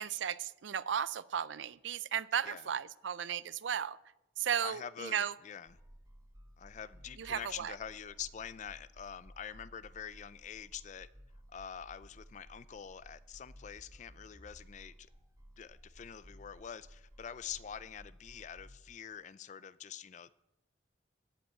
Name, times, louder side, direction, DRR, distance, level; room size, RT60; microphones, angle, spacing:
voice 1, 0.0-4.0 4.4-5.3 7.2-7.7, right 8 dB, 75° right, 0.4 m, -35 dB
voice 2, 4.6-5.8 6.6-11.1 11.5-15.1 15.6-20.3, left 8 dB, 40° left, 0.3 m, -46 dB
sound 1, 5.7-18.8, equal, 20° right, 1.4 m, -57 dB
13.5 x 5.3 x 8.7 m
head